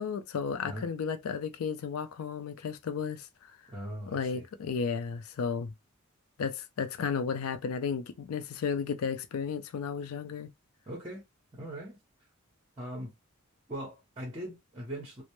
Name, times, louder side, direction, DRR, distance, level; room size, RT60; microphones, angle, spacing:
voice 1, 0.0-3.3 4.1-5.7 6.4-10.5, left 6 dB, 85° left, 0.4 m, -33 dB
voice 2, 3.7-4.5 10.9-11.2 11.5-12.0 12.8-13.1 13.7-15.2, equal, 25° right, 0.7 m, -40 dB
2.1 x 2.0 x 2.9 m
head